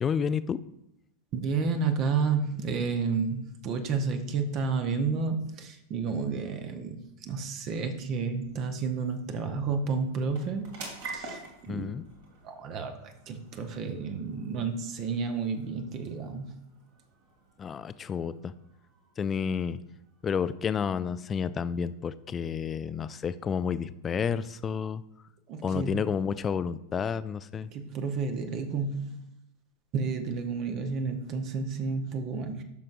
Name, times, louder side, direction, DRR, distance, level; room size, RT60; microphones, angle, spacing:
voice 1, 0.0-0.6 11.7-12.0 17.6-18.5 19.2-19.8 20.2-25.0 25.6-27.7, left 7 dB, 20° left, 14 dB, 0.3 m, -30 dB
voice 2, 1.3-10.8 11.1-11.9 12.4-16.5 25.5-26.0 27.6-29.2 29.9-32.6, right 5 dB, 35° right, 7 dB, 0.9 m, -31 dB
sound 1, 7.7-22.2, right 3 dB, 55° right, 2.4 m, -50 dB
11.5 x 6.4 x 2.5 m, 0.88 s
figure-of-eight pair, 90°, 0 cm